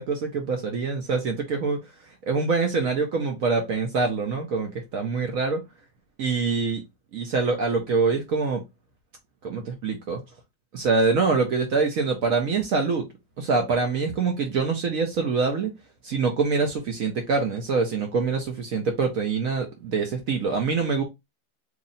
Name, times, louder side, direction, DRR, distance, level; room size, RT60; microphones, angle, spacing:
voice 1, 0.0-1.8 2.3-5.6 6.2-6.8 7.1-8.6 9.4-10.2 10.7-13.1 13.4-15.7 16.0-21.0, right 4 dB, 60° right, 0.9 m, -25 dB
3.0 x 2.7 x 3.9 m
omnidirectional pair, 2.0 m